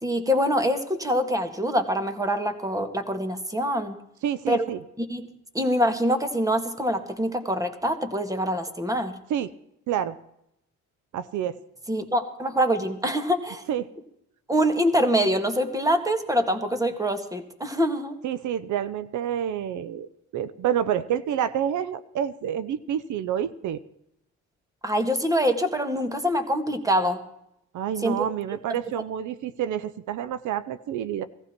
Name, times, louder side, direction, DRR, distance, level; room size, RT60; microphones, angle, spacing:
voice 1, 0.0-4.0 4.5-4.7 5.0-5.3 5.5-9.2 11.9-13.6 14.5-18.2 24.8-27.2 28.0-28.3 28.7-28.8, equal, 10° right, 7 dB, 1.9 m, -25 dB
voice 2, 4.2-4.8 9.3-9.5 9.9-10.2 11.1-11.6 13.7-13.9 18.2-23.8 27.7-31.2, right 10 dB, 75° right, 14 dB, 0.7 m, -28 dB
18.0 x 14.5 x 4.5 m, 0.78 s
cardioid pair, 90°, 30 cm